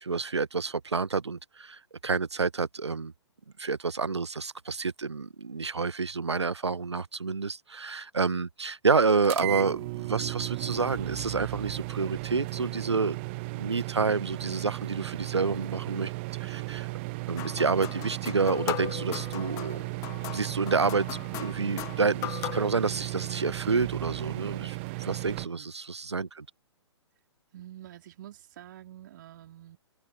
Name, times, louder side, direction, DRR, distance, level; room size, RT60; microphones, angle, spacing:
voice 1, 0.0-3.1 3.6-13.2 13.5-16.1 16.4-16.9 17.3-19.9 20.3-26.5, right 4 dB, 70° right, 1.2 m, -29 dB
sound 1, 9.2-25.5, right 26 dB, 25° right, 0.5 m, -35 dB
sound 2, 17.4-22.8, left 19 dB, 20° left, 0.9 m, -38 dB
voice 2, 27.5-29.8, right 12 dB, 45° right, 3.3 m, -47 dB
figure-of-eight pair, 120°, 15 cm